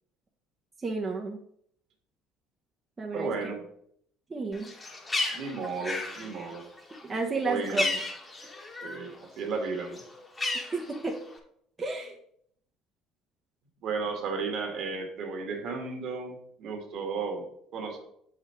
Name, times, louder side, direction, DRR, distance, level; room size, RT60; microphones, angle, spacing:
voice 1, 0.8-1.4 3.0-3.3 4.3-4.7 7.0-7.9 10.5-11.2 11.8-12.1, right 3 dB, 25° right, 0 dB, 1.1 m, -31 dB
voice 2, 3.1-3.7 5.3-6.6 7.4-8.0 8.8-10.0 13.8-17.4 17.7-18.0, right 4 dB, 60° right, 4 dB, 1.9 m, -34 dB
Bird, 4.5-9.1 9.4-11.4, left 2 dB, 25° left, 2.0 m, -34 dB
7.3 x 5.1 x 4.6 m, 0.69 s
hypercardioid pair, 70°, 0 cm